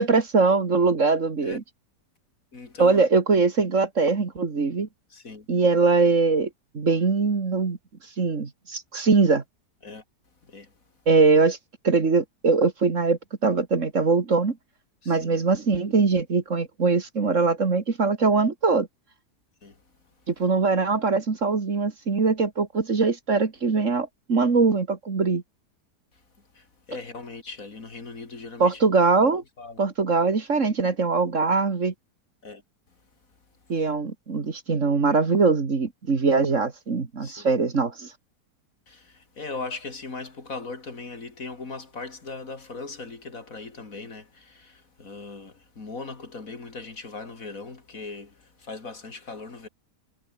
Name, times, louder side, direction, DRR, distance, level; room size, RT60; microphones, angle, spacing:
voice 1, 0.0-1.6 2.8-4.9 5.5-6.5 6.7-7.8 8.2-9.4 11.1-11.6 11.8-14.6 15.1-18.9 20.3-25.4 28.6-29.4 29.8-31.9 33.7-38.1, right 4 dB, 50° right, 2.3 m, -22 dB
voice 2, 2.5-3.0 5.1-5.5 9.8-10.0 10.4-10.7 15.0-15.4 19.6-19.8 26.5-28.8 29.2-29.8 32.4-32.6 37.2-37.5 38.9-49.7, left 3 dB, 55° left, 3.3 m, -39 dB
omnidirectional pair, 1.8 m